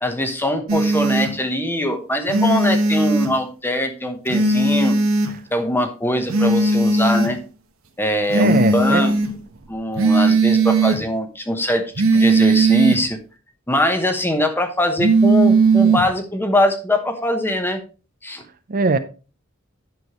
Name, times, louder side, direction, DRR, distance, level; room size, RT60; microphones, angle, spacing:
voice 1, 0.0-4.9 5.5-7.4 8.0-9.1 9.7-13.2 13.7-17.8 18.2-18.4, left 1 dB, 10° left, 1.0 m, -22 dB
sound 1, 0.7-1.3 2.3-3.3 4.3-5.3 6.3-7.3 8.3-9.3 10.0-11.0 12.0-13.0 15.0-16.0, right 3 dB, 80° right, 1.2 m, -17 dB
voice 2, 8.3-9.1 18.7-19.0, right 3 dB, 45° right, 0.6 m, -20 dB
9.4 x 6.5 x 3.0 m
head